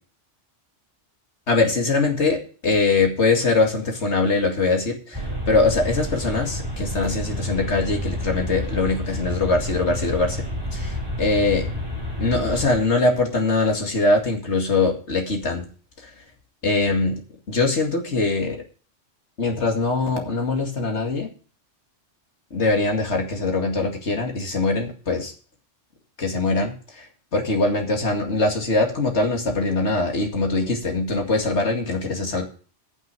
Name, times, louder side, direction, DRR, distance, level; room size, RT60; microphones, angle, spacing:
voice 1, 1.5-10.5 10.7-11.7 12.2-15.7 16.6-17.2 17.5-18.6 19.4-21.3 22.5-25.3 26.2-27.1 27.3-32.4, left 3 dB, 65° left, 2 dB, 2.5 m, -22 dB
sound 1, 5.1-12.9, left 1 dB, 20° right, 4.6 m, -29 dB
9.3 x 7.9 x 6.8 m, 0.40 s
omnidirectional pair, 1.2 m